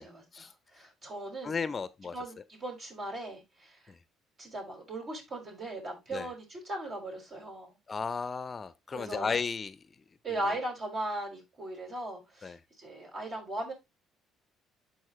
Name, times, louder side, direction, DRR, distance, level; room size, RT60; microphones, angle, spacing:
voice 1, 0.0-1.6 2.1-3.8 4.4-7.8 8.9-9.3 10.2-13.7, right 1 dB, 45° right, 5.5 m, -38 dB
voice 2, 1.4-2.1 3.9-4.0 6.1-6.3 7.9-9.8 10.5-10.6 12.4-12.6, left 5 dB, 35° left, 0.6 m, -34 dB
12.0 x 4.4 x 3.0 m
hypercardioid pair, 60°, 0 cm